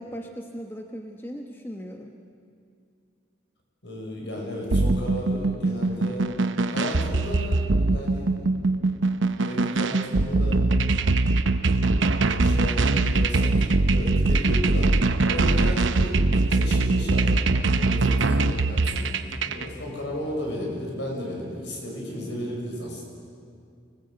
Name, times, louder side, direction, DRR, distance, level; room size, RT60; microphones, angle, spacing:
voice 1, 0.0-2.1, equal, 10° left, 2 dB, 1.0 m, -38 dB
voice 2, 3.8-6.3 6.7-8.9 9.3-10.6 11.5-14.9 15.2-23.0, equal, 65° left, -1 dB, 6.4 m, -34 dB
sound 1, 4.7-19.7, right 2 dB, 75° right, 0.8 m, -22 dB
25.5 x 19.0 x 8.0 m, 2.3 s
head